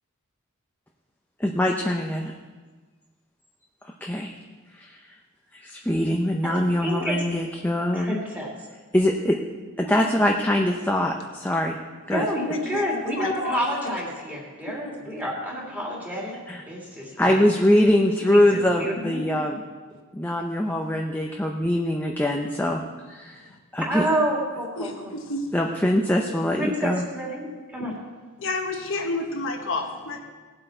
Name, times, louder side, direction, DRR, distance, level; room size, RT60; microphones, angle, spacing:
voice 1, 1.4-2.3 3.8-4.4 4.7-5.1 5.5-8.2 8.9-9.4 9.8-11.8 12.1-12.3 16.5-16.6 17.2-19.6 20.1-23.4 23.7-24.0 25.5-27.1, left 1 dB, 10° left, 1 dB, 0.7 m, -23 dB
voice 2, 6.8-7.2 7.9-8.5 9.8-10.1 12.1-16.4 16.7-17.5 18.3-19.3 23.8-25.1 26.6-28.0, equal, 10° right, -4 dB, 2.9 m, -29 dB
voice 3, 12.1-13.6 14.7-15.0 23.4-23.6 24.8-25.6 28.4-30.2, left 2 dB, 65° left, 2 dB, 1.4 m, -31 dB
18.5 x 7.8 x 4.5 m, 1.4 s
head